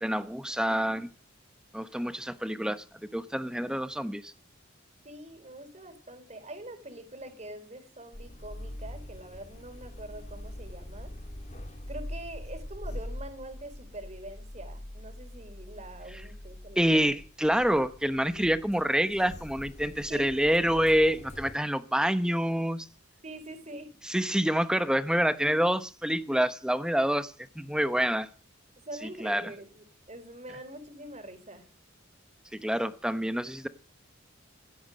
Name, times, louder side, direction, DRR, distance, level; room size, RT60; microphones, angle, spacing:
voice 1, 0.0-1.1 1.7-2.8 3.1-4.3 16.8-22.9 24.0-28.3 29.0-29.5 32.6-33.7, equal, 5° right, 11 dB, 1.0 m, -27 dB
voice 2, 5.0-11.1 11.9-17.2 20.1-20.4 23.2-24.0 28.9-31.7, right 1 dB, 35° right, 9 dB, 4.0 m, -44 dB
sound 1, 8.1-21.6, left 1 dB, 35° left, 2.0 m, -43 dB
17.0 x 13.5 x 6.4 m, 0.39 s
head